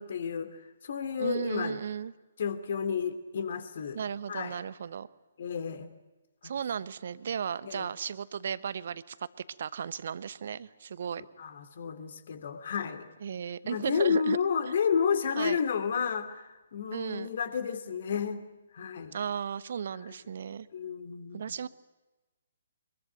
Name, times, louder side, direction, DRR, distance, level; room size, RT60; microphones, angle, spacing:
voice 1, 0.0-1.8 2.4-4.0 4.3-4.6 5.4-5.9 7.6-7.9 11.4-13.1 13.6-18.4 18.7-19.2 20.0-20.2 20.7-21.5, left 6 dB, 50° left, 10 dB, 2.6 m, -31 dB
voice 2, 1.2-2.1 3.9-5.1 6.4-9.1 9.6-11.2 13.2-14.4 15.3-15.6 16.9-17.4 19.1-20.7 21.3-21.7, right 7 dB, 50° right, 17 dB, 1.0 m, -35 dB
24.5 x 22.0 x 9.0 m, 1.1 s
figure-of-eight pair, 130°, 0 cm